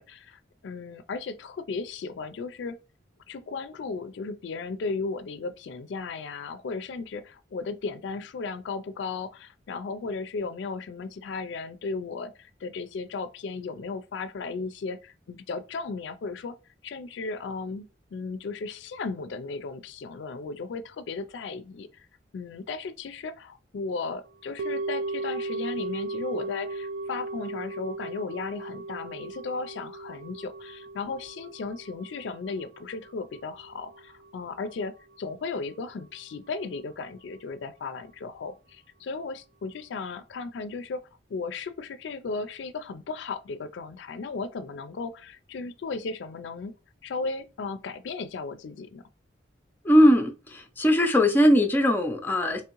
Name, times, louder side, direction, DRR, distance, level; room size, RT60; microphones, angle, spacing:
voice 1, 0.0-2.8 3.3-16.5 16.8-22.1 22.3-41.0 41.3-46.8 47.0-49.0, left 4 dB, 70° left, 0.4 m, -35 dB
sound 1, 24.6-34.9 35.1-35.2, right 2 dB, 75° right, 0.4 m, -37 dB
voice 2, 49.8-52.6, equal, 10° left, 0.5 m, -20 dB
3.5 x 3.2 x 2.9 m
head